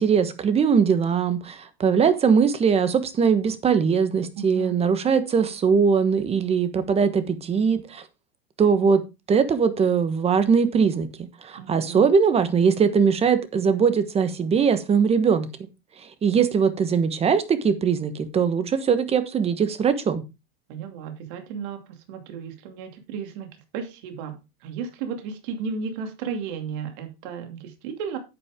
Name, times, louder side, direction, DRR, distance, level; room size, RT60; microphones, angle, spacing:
voice 1, 0.0-8.0 8.6-9.0 9.3-11.1 11.4-15.5 16.0-20.2, right 6 dB, 20° right, 11 dB, 1.2 m, -21 dB
voice 2, 11.6-12.0 20.7-21.8 22.1-24.4 24.6-28.2, right 6 dB, 60° right, 5 dB, 2.7 m, -34 dB
9.6 x 8.6 x 3.7 m, 0.27 s
supercardioid pair, 145°, 30 cm